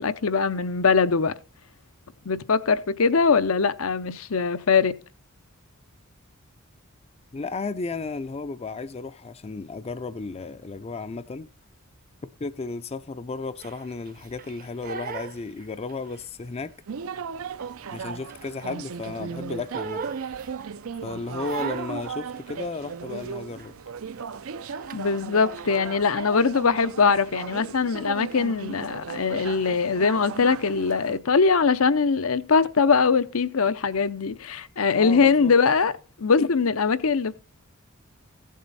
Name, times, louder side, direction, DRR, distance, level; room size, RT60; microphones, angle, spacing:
voice 1, 0.0-1.3 2.3-4.9 24.9-35.9 36.2-37.3, left 5 dB, 80° left, 0.8 m, -22 dB
voice 2, 7.3-11.5 12.4-16.7 17.9-20.0 21.0-23.7 34.9-35.5, left 3 dB, 30° left, 0.4 m, -34 dB
Crying sobbing, 13.6-16.3 16.6-18.9 19.2-20.9 21.4-23.3 23.6-23.9 24.2-25.8, right 6 dB, 40° right, 0.7 m, -38 dB
sound 1, 16.9-31.2, right 6 dB, 80° right, 0.5 m, -36 dB
15.5 x 7.4 x 4.1 m
head